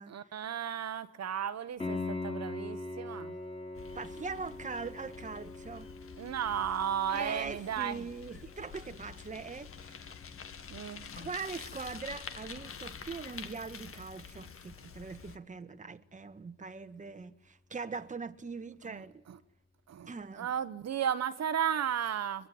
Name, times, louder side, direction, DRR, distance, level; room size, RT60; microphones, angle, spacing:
voice 1, 0.1-3.3 6.2-8.0 10.7-11.1 18.9-19.4 19.9-20.1 20.4-22.5, right 8 dB, 60° right, 1.4 m, -34 dB
Piano, 1.8-12.5 15.8-15.9, left 2 dB, 20° left, 5.3 m, -43 dB
Bicycle, 3.8-15.4, left 6 dB, 45° left, 2.1 m, -48 dB
voice 2, 3.9-5.9 7.1-10.0 11.2-19.2 20.1-20.5, right 4 dB, 25° right, 1.5 m, -41 dB
22.5 x 22.5 x 9.6 m
cardioid pair, 90°, 30 cm